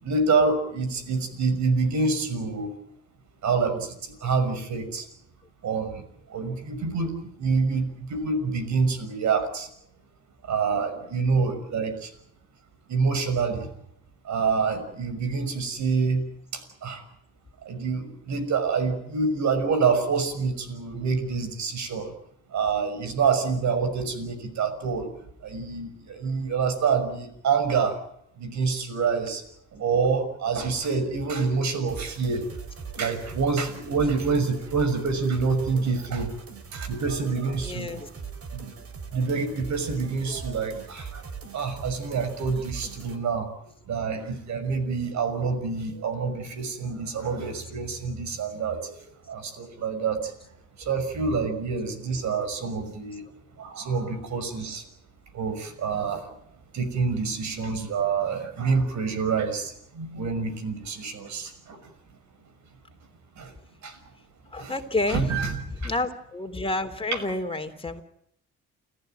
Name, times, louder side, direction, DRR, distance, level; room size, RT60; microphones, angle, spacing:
voice 1, 0.0-2.7 3.4-5.1 5.6-6.0 6.3-7.1 7.4-9.7 10.5-12.1 12.9-13.7 14.2-16.2 16.5-17.0 17.6-22.1 22.5-25.1 25.4-28.0 28.4-29.4 29.7-32.4 33.0-36.3 36.7-37.9 38.2-38.3 38.5-38.7 39.1-41.2 41.5-43.5 43.9-48.9 49.3-50.3 50.8-53.2 53.6-54.8 55.3-56.3 56.7-61.8 63.4-63.5 63.8-64.0 64.6-64.7 65.1-65.6 65.8-65.9, right 5 dB, 65° right, 10 dB, 6.1 m, -27 dB
sound 1, 31.9-43.2, right 5 dB, 50° right, 4.1 m, -40 dB
voice 2, 37.6-38.1 40.3-40.4 43.0-43.2 64.5-65.3 65.8-68.0, left 2 dB, 20° left, 6 dB, 3.4 m, -30 dB
30.0 x 15.0 x 9.1 m, 0.74 s
cardioid pair, 90°, 30 cm